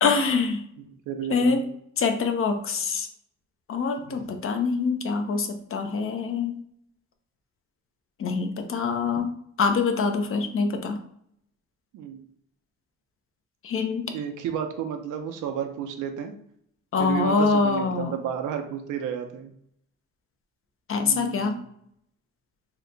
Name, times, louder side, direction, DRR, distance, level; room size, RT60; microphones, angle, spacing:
voice 1, 0.0-0.6 1.3-1.6 2.0-3.1 3.7-6.5 8.2-9.3 9.6-11.0 13.6-14.1 16.9-18.2 20.9-21.5, left 4 dB, 45° left, 6 dB, 0.6 m, -24 dB
voice 2, 1.1-1.6 4.1-4.2 11.9-12.2 14.1-16.3 17.0-19.5 21.0-21.7, right 8 dB, 85° right, 6 dB, 0.6 m, -32 dB
2.9 x 2.2 x 3.8 m, 0.69 s
cardioid pair, 90°, 30 cm